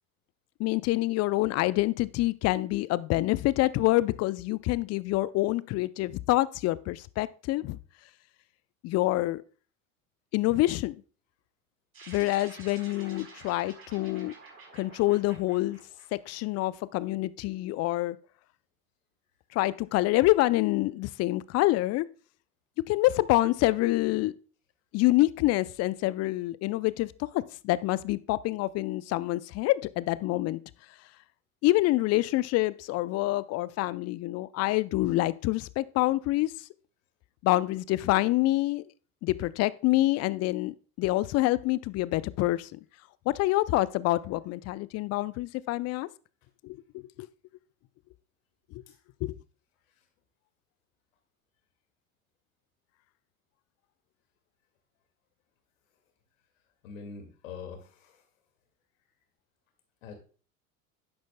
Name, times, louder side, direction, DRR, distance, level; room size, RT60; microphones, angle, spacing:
voice 1, 0.6-7.8 8.8-9.4 10.3-11.0 12.1-14.3 14.7-15.8 16.1-18.2 19.5-22.1 22.9-24.3 24.9-30.6 31.6-36.5 37.4-38.8 39.2-42.8 43.3-46.1 46.6-47.3 49.2-49.4, left 18 dB, 40° left, 0.5 m, -26 dB
sound 1, 11.9-16.6, right 4 dB, 30° right, 4.2 m, -50 dB
voice 2, 56.8-58.3 60.0-60.1, left 5 dB, 70° left, 2.2 m, -44 dB
10.5 x 10.0 x 2.2 m
figure-of-eight pair, 65°, 41 cm